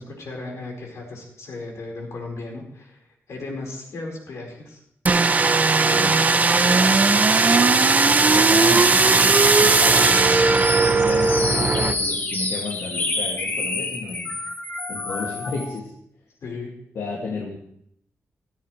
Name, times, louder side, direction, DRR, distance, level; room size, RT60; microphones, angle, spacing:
voice 1, 0.0-4.8 16.4-16.7, left 3 dB, 70° left, 0 dB, 4.7 m, -36 dB
sound 1, 5.1-11.9, right 4 dB, 30° right, 0.6 m, -17 dB
voice 2, 5.8-7.0 8.0-14.4 14.9-15.9 16.9-17.6, left 3 dB, 90° left, -2 dB, 2.2 m, -32 dB
sound 2, 7.8-15.8, left 3 dB, 40° left, 1.7 m, -29 dB
16.0 x 14.0 x 3.3 m, 0.70 s
wide cardioid pair, 150°, 5 cm